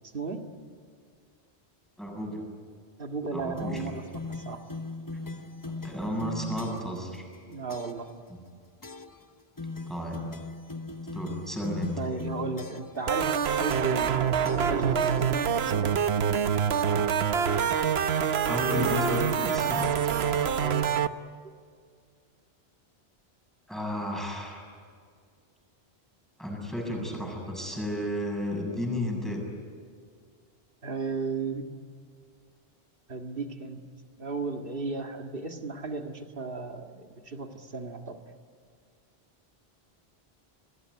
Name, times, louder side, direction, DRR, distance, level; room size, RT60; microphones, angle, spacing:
voice 1, 2.0-2.4 3.3-3.9 5.8-7.3 9.9-10.2 11.1-12.0 18.5-20.1 23.7-24.6 26.4-29.4, left 1 dB, ahead, 0 dB, 7.5 m, -32 dB
voice 2, 3.0-4.6 7.4-8.1 12.0-14.2 14.5-16.1 20.6-20.9 30.8-31.7 33.1-33.8 34.2-38.2, right 4 dB, 60° right, 4 dB, 2.2 m, -35 dB
sound 1, 3.6-7.0 7.7-8.1 8.8-9.2 9.6-13.0 13.7-14.1 14.4-15.8, left 3 dB, 20° left, 0.9 m, -40 dB
sound 2, 13.1-21.1, right 7 dB, 80° right, 1.1 m, -26 dB
29.0 x 20.5 x 9.7 m, 2.1 s
omnidirectional pair, 1.1 m